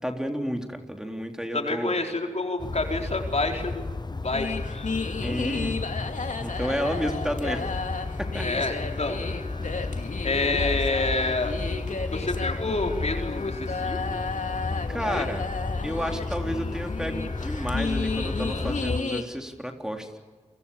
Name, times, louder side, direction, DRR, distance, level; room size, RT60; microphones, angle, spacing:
voice 1, 0.0-1.9 5.2-5.8 6.4-7.8 8.2-8.6 14.9-15.5 15.8-20.1, equal, 5° right, 4 dB, 3.8 m, -31 dB
voice 2, 1.5-3.9 4.2-4.9 8.4-9.2 10.2-11.5 12.1-14.2 14.9-15.3, left 2 dB, 60° left, 3 dB, 4.5 m, -28 dB
sound 1, 2.6-19.0, left 3 dB, 35° left, 0.8 m, -33 dB
sound 2, 4.3-19.2, left 4 dB, 80° left, 2.5 m, -33 dB
29.0 x 23.0 x 7.2 m, 1.4 s
cardioid pair, 45°, 13 cm